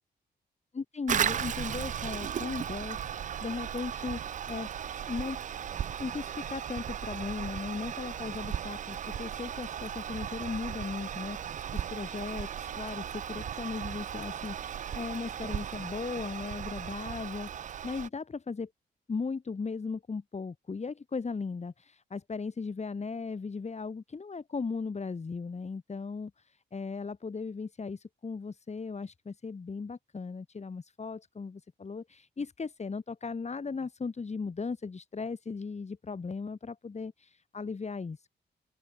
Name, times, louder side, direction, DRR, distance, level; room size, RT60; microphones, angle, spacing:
voice 1, 0.7-4.7 5.1-5.4 6.0-18.7 19.1-38.3, left 4 dB, 35° left, 3.2 m, -37 dB
Toilet flush, 1.1-18.1, right 9 dB, 45° right, 0.4 m, -36 dB
open air
cardioid pair, 70°, 19 cm